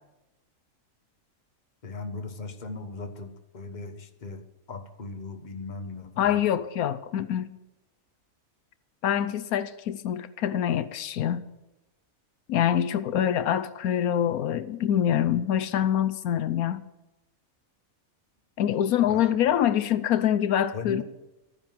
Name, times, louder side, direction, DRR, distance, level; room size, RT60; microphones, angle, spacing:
voice 1, 1.8-4.4 4.7-6.4 19.0-19.4 20.7-21.0, left 4 dB, 35° left, 7 dB, 1.3 m, -38 dB
voice 2, 6.2-7.5 9.0-11.4 12.5-16.8 18.6-21.0, left 10 dB, 85° left, 13 dB, 1.1 m, -25 dB
13.0 x 9.9 x 7.6 m, 0.98 s
omnidirectional pair, 1.5 m